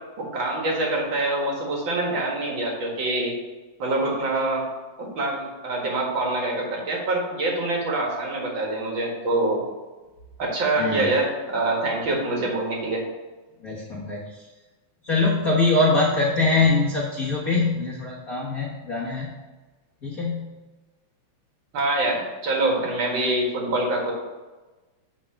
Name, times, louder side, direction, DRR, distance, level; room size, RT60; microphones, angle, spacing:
voice 1, 0.2-3.3 3.8-4.6 5.0-9.6 10.4-13.0 21.7-24.1, right 2 dB, 45° right, -1 dB, 2.1 m, -25 dB
voice 2, 10.8-11.1 13.6-14.5 15.0-19.3 20.0-20.6, left 3 dB, 75° left, -6 dB, 0.8 m, -23 dB
10.0 x 3.8 x 5.8 m, 1.2 s
omnidirectional pair, 3.6 m